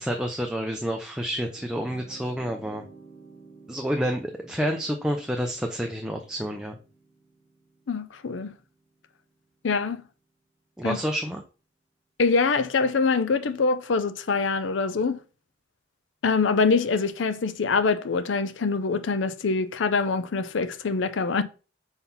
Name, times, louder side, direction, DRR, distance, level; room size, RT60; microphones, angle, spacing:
voice 1, 0.0-2.8 3.7-6.8 10.8-11.4, equal, 5° right, 0.5 m, -29 dB
sound 1, 0.9-10.0, right 3 dB, 40° left, 2.3 m, -53 dB
voice 2, 7.9-8.6 9.6-10.0 10.8-11.0 12.2-15.2 16.2-21.4, left 4 dB, 75° left, 0.5 m, -24 dB
4.4 x 3.9 x 5.4 m
head